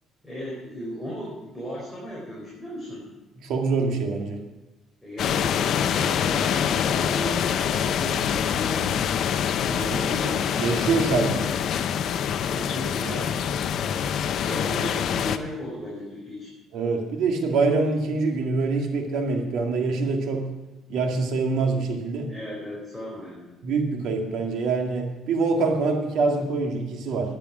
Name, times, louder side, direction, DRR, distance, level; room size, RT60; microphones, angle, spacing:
voice 1, 0.2-3.0 5.0-10.6 12.5-13.4 14.2-16.5 22.3-23.6, equal, ahead, -7 dB, 4.3 m, -36 dB
voice 2, 3.4-4.4 9.9-10.0 10.6-11.5 16.7-20.5 20.9-22.3 23.6-27.4, right 3 dB, 75° right, 2 dB, 2.1 m, -25 dB
sound 1, 5.2-15.4, left 8 dB, 60° left, 0.7 m, -25 dB
10.5 x 10.5 x 6.2 m, 1.0 s
cardioid pair, 130°, 0 cm